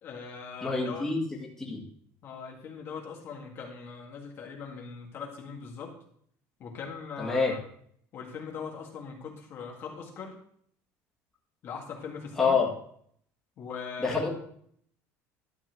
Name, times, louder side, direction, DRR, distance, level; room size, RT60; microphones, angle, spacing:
voice 1, 0.0-1.1 2.2-5.9 6.6-7.6 8.1-10.3 11.6-12.6 13.6-14.3, left 6 dB, 40° left, 0 dB, 1.9 m, -40 dB
voice 2, 0.6-1.2 1.6-1.8 7.2-7.5 12.4-12.7 14.0-14.3, left 4 dB, 5° left, -3 dB, 2.0 m, -26 dB
12.5 x 4.4 x 7.8 m, 0.63 s
cardioid pair, 170°, 6 cm